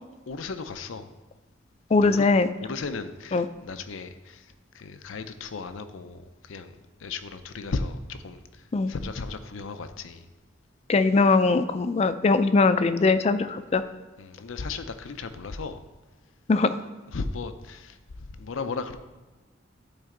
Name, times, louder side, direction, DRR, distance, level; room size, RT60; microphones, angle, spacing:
voice 1, 0.3-1.1 1.9-2.3 2.6-4.5 4.7-10.3 14.2-15.8 17.1-19.0, left 4 dB, 90° left, 10 dB, 0.6 m, -36 dB
voice 2, 1.9-2.5 3.3-3.5 8.7-8.9 10.9-13.8 16.5-16.8, left 3 dB, 35° left, 12 dB, 0.3 m, -21 dB
12.0 x 4.3 x 3.8 m, 1.2 s
head